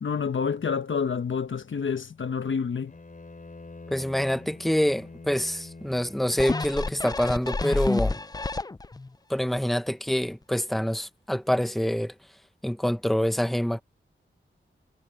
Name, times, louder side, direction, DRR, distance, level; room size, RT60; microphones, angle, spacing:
voice 1, 0.0-2.9, left 6 dB, 75° left, 1.3 m, -28 dB
Bowed string instrument, 2.9-7.3, left 3 dB, 40° left, 5.7 m, -46 dB
voice 2, 3.9-8.2 9.3-12.1 12.6-13.8, equal, ahead, 1.1 m, -26 dB
sound 1, 6.4-9.1 9.6-9.7, left 3 dB, 20° left, 0.5 m, -29 dB
wide cardioid pair, 75°, 20 cm